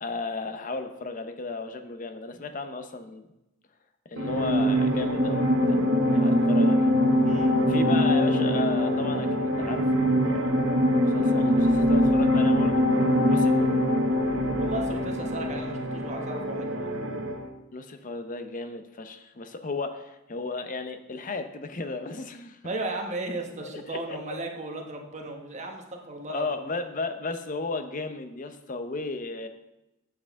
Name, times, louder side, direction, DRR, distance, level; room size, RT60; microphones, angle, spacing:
voice 1, 0.0-3.3 4.1-5.8 6.2-6.9 7.7-10.6 10.8-12.9 13.2-13.7 17.7-22.6 23.9-24.2 26.3-29.5, left 3 dB, 45° left, 8 dB, 0.7 m, -34 dB
sound 1, 4.2-17.5, equal, 90° right, 1.0 m, -23 dB
voice 2, 6.1-6.5 7.2-7.6 14.6-16.9 22.6-26.5, right 2 dB, 35° right, 2 dB, 1.1 m, -35 dB
8.0 x 7.5 x 3.6 m, 0.93 s
head